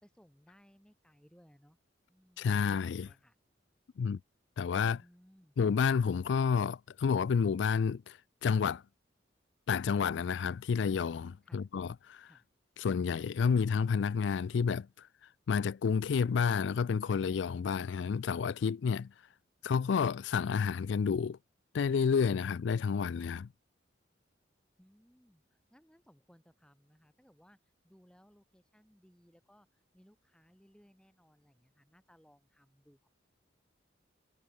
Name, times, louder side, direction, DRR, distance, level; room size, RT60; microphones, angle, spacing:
voice 1, 0.0-1.8 2.1-3.3 4.8-5.6 11.4-11.7 12.2-12.5 24.8-27.6 27.8-33.1, equal, 5° left, 4.9 m, -64 dB
voice 2, 2.4-3.1 4.0-4.2 4.6-5.0 5.6-8.8 9.7-12.3 12.8-15.1 15.5-19.1 19.6-21.4 21.7-23.5, left 6 dB, 70° left, 0.4 m, -30 dB
head